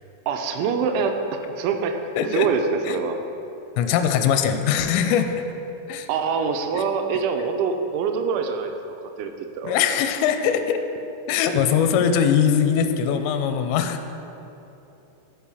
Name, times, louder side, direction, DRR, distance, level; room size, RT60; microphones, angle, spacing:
voice 1, 0.3-2.0 2.3-3.2 6.1-8.8 9.2-9.8, right 5 dB, 85° right, 5 dB, 2.9 m, -24 dB
voice 2, 2.2-2.5 2.9-3.0 3.8-5.4 5.9-6.1 6.7-6.8 9.6-10.8 11.3-14.2, left 8 dB, 85° left, 7 dB, 3.1 m, -21 dB
13.5 x 4.8 x 7.0 m, 3.0 s
omnidirectional pair, 5.7 m